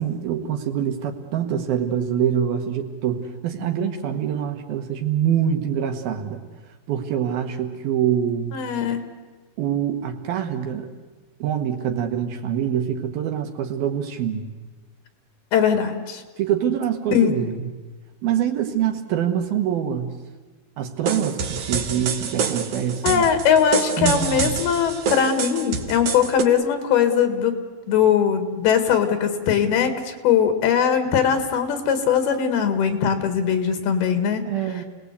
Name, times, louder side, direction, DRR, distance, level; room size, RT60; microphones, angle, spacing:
voice 1, 0.0-6.4 6.9-8.6 9.6-10.9 11.4-14.5 16.4-17.6 18.2-20.1 20.8-23.3 24.0-24.5 34.4-34.8, right 9 dB, 75° right, 5 dB, 3.2 m, -25 dB
voice 2, 8.5-9.0 15.5-16.2 17.1-17.4 23.0-27.6 27.9-34.5, left 8 dB, 80° left, 8 dB, 3.8 m, -20 dB
sound 1, 21.1-26.4, right 6 dB, 55° right, 1.7 m, -27 dB
29.5 x 19.0 x 8.3 m, 1.3 s
omnidirectional pair, 4.4 m